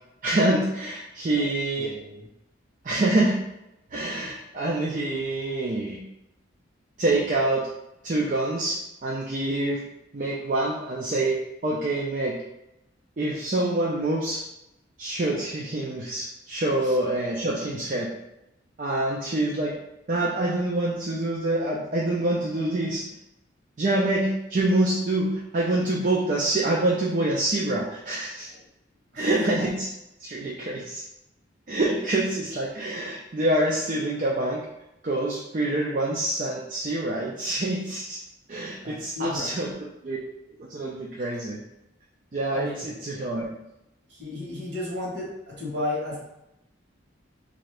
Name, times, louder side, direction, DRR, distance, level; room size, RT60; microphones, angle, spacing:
voice 1, 0.2-1.9 2.8-3.4 3.9-6.0 7.0-7.7 8.0-9.8 10.1-11.4 11.6-12.4 13.2-14.4 15.0-18.1 18.8-19.8 20.1-23.0 23.8-28.5 29.1-29.9 30.2-31.0 31.7-34.6 35.0-38.2 38.5-40.2 40.6-41.6 42.3-43.5, right 2 dB, 40° right, -4 dB, 0.4 m, -26 dB
voice 2, 1.8-2.2 16.8-16.9 29.1-29.4 38.8-39.5 42.5-42.8 44.1-46.2, left 2 dB, 55° right, -4 dB, 1.2 m, -33 dB
3.7 x 2.6 x 3.3 m, 0.89 s
head